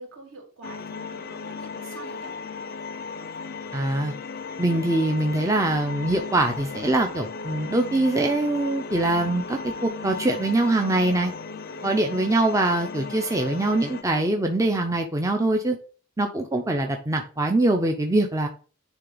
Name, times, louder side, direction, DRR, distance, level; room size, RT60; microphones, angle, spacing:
voice 1, 0.0-2.3 11.7-11.9, right 2 dB, 70° right, -1 dB, 2.5 m, -45 dB
sound 1, 0.6-14.0, left 4 dB, 50° left, 0.5 m, -36 dB
voice 2, 3.7-4.1 4.6-11.3 11.8-15.8 16.2-18.5, right 2 dB, 15° right, 3 dB, 0.5 m, -23 dB
9.9 x 3.4 x 3.9 m, 0.40 s
head